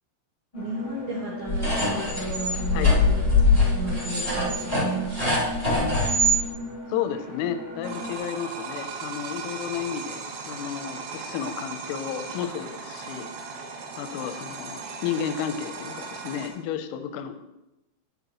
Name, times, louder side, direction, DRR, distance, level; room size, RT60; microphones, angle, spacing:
sound 1, 0.5-8.2, left 2 dB, 45° left, 1.1 m, -37 dB
voice 1, 0.5-5.5, right 3 dB, 60° right, -5 dB, 3.1 m, -34 dB
sound 2, 1.5-6.4, left 2 dB, 20° right, 1.3 m, -22 dB
voice 2, 6.9-13.3 14.0-17.4, left 8 dB, 85° left, 9 dB, 3.2 m, -32 dB
sound 3, 7.8-16.5, right 5 dB, 85° right, 4.0 m, -37 dB
11.0 x 9.6 x 3.0 m, 0.92 s
omnidirectional pair, 5.8 m